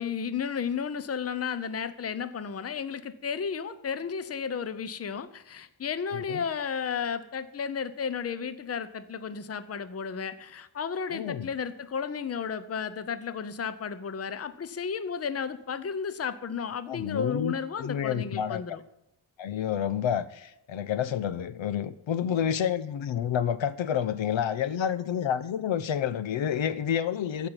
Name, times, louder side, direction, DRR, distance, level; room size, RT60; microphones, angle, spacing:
voice 1, 0.0-18.8, left 6 dB, 30° left, 0.7 m, -33 dB
voice 2, 6.1-6.4 11.1-11.5 16.9-18.6 19.4-27.5, left 9 dB, 75° left, 0.8 m, -29 dB
15.0 x 5.3 x 9.7 m
wide cardioid pair, 150°, 46 cm